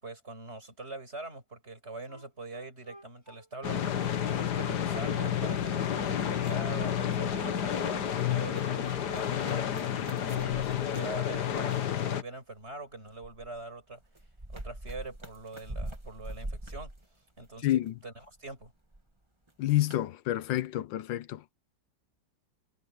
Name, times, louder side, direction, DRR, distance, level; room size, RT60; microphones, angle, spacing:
voice 1, 0.0-14.0 14.5-16.9 17.4-17.7 18.0-18.7, right 2 dB, 35° right, 6.2 m, -43 dB
Wind instrument woodwind instrument, 2.0-6.7 7.0-8.1 8.3-8.5, equal, 15° left, 6.7 m, -53 dB
sound 1, 3.6-12.2, left 9 dB, 65° left, 1.7 m, -30 dB
sound 2, 6.2-7.3 7.6-11.9 12.6-17.9 18.2-19.1 19.5-19.6 19.9-20.0, right 1 dB, 15° right, 2.0 m, -44 dB
voice 2, 17.6-17.9 19.6-21.5, left 14 dB, 85° left, 1.4 m, -29 dB
omnidirectional pair, 2.0 m